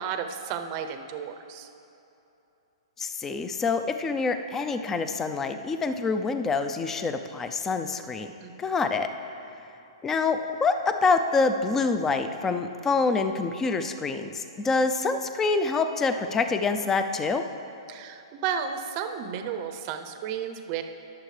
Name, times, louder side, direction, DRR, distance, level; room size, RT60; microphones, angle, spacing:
voice 1, 0.0-1.7 8.4-8.5 17.9-20.8, right 7 dB, 35° right, 7 dB, 0.7 m, -33 dB
voice 2, 3.0-8.3 8.6-9.1 10.0-17.4, left 4 dB, 10° left, 8 dB, 0.4 m, -26 dB
20.5 x 7.1 x 3.3 m, 2.9 s
hypercardioid pair, 155°, 3 cm